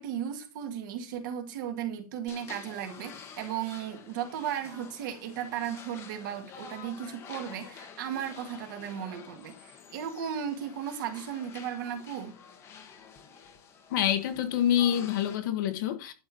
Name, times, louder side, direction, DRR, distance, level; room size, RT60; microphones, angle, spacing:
voice 1, 0.0-12.4, right 9 dB, 30° right, 1.8 m, -35 dB
sound 1, 2.3-15.4, left 7 dB, 15° left, 1.2 m, -49 dB
voice 2, 13.9-16.1, left 10 dB, 30° left, 1.4 m, -27 dB
12.0 x 4.6 x 7.0 m
hypercardioid pair, 180°, 19 cm